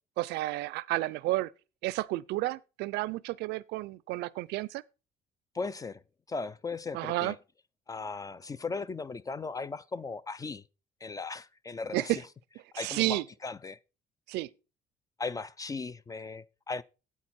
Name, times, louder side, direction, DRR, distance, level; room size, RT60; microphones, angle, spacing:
voice 1, 0.2-1.5 1.8-4.8 6.9-7.4 11.9-12.2 12.7-13.2 14.3-14.5, right 19 dB, 85° right, 0.5 m, -31 dB
voice 2, 5.5-6.0 6.3-7.4 7.9-10.6 11.0-12.2 12.7-13.8 15.2-16.8, left 4 dB, 20° left, 0.4 m, -37 dB
8.6 x 8.4 x 4.3 m
cardioid pair, 110°, 17 cm